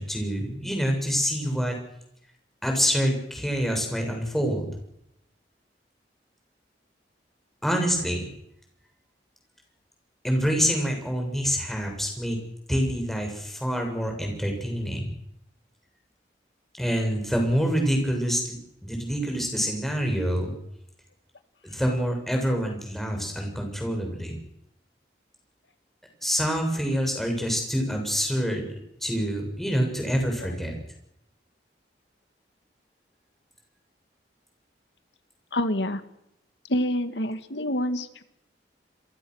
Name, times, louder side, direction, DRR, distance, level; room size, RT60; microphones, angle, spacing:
voice 1, 0.0-1.7 2.6-4.7 7.6-8.3 10.2-12.4 12.7-15.1 16.8-20.5 21.6-24.4 26.2-28.6 29.0-30.7, equal, ahead, 2 dB, 7.1 m, -26 dB
voice 2, 35.5-36.0 36.7-38.2, left 1 dB, 80° left, 9 dB, 2.1 m, -27 dB
29.0 x 23.0 x 6.5 m, 0.80 s
head